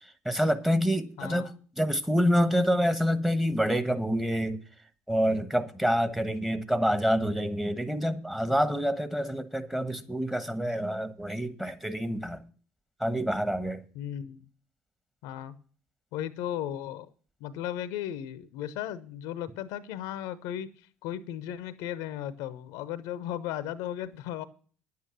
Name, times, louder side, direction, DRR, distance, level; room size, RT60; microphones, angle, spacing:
voice 1, 0.2-1.5 1.8-4.6 5.1-12.4 13.0-13.8, equal, 5° right, 1.3 m, -27 dB
voice 2, 1.2-1.5 13.9-14.4 15.2-15.6 16.1-17.1 17.4-24.4, left 11 dB, 65° left, 0.8 m, -36 dB
10.5 x 8.6 x 6.0 m
figure-of-eight pair, 55°, 6 cm